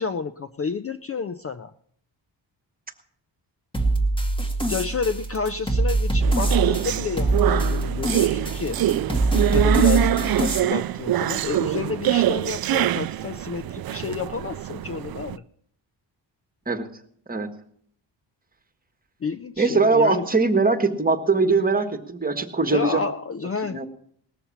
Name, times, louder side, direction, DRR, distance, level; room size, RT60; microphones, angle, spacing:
voice 1, 0.0-1.7 4.7-8.8 9.5-15.4 19.2-20.3 22.7-23.8, left 5 dB, 30° left, 12 dB, 0.5 m, -30 dB
sound 1, 3.7-10.6, right 2 dB, 10° left, 2.0 m, -23 dB
sound 2, 6.2-15.4, right 13 dB, 50° right, 0.5 m, -24 dB
voice 2, 19.6-23.0 23.7-23.9, right 4 dB, 20° right, 7 dB, 1.5 m, -21 dB
19.0 x 6.9 x 7.1 m, 0.62 s
cardioid pair, 115°, 46 cm